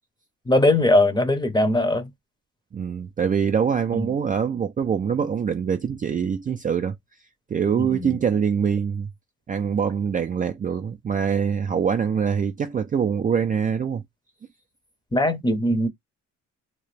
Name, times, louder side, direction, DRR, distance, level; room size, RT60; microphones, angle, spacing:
voice 1, 0.5-2.1 3.9-4.1 7.8-8.2 15.1-15.9, left 1 dB, 15° left, 0.7 m, -20 dB
voice 2, 2.7-6.9 7.5-9.1 9.5-14.0, right 7 dB, 30° right, 0.4 m, -24 dB
2.9 x 2.2 x 3.2 m
cardioid pair, 90°, 30 cm